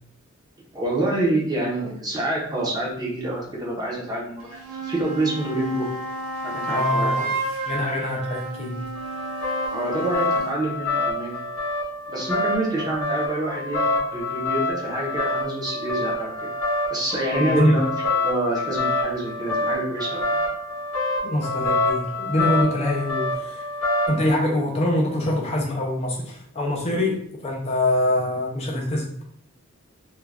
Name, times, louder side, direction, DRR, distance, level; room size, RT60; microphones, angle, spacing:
voice 1, 0.7-5.9 6.4-7.1 9.7-11.4 12.1-16.5 16.9-20.4, right 1 dB, 20° right, -3 dB, 0.6 m, -27 dB
sound 1, 4.4-10.6, right 2 dB, 65° right, 0.7 m, -30 dB
voice 2, 6.7-7.4 7.7-8.8 17.4-17.8 21.2-23.6 24.1-29.1, left 1 dB, 30° left, -1 dB, 0.4 m, -24 dB
sound 2, 9.0-24.3, left 2 dB, 75° left, 0.7 m, -26 dB
2.4 x 2.2 x 3.2 m, 0.65 s
head